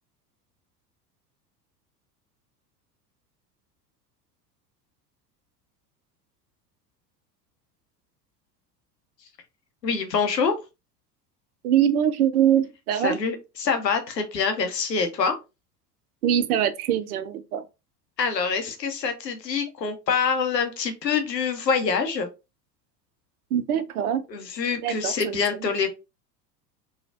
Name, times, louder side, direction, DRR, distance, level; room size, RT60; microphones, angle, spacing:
voice 1, 9.8-10.5 13.0-15.4 18.2-22.3 24.3-25.9, left 5 dB, 80° left, 0.7 m, -25 dB
voice 2, 11.6-13.2 16.2-17.6 23.5-24.2 24.8-25.7, right 10 dB, 60° right, 0.5 m, -23 dB
3.1 x 2.3 x 2.4 m
figure-of-eight pair, 75°, 49 cm